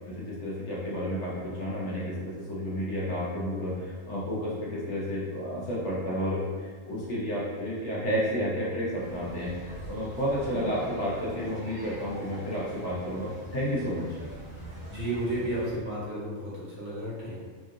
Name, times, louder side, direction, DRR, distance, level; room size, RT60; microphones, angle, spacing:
voice 1, 0.1-14.2, equal, 60° left, -6 dB, 1.0 m, -31 dB
sound 1, 9.0-15.8, right 1 dB, 40° left, 1.5 m, -43 dB
voice 2, 14.9-17.4, right 1 dB, 55° right, -8 dB, 1.2 m, -32 dB
3.4 x 2.5 x 2.5 m, 1.5 s
omnidirectional pair, 1.4 m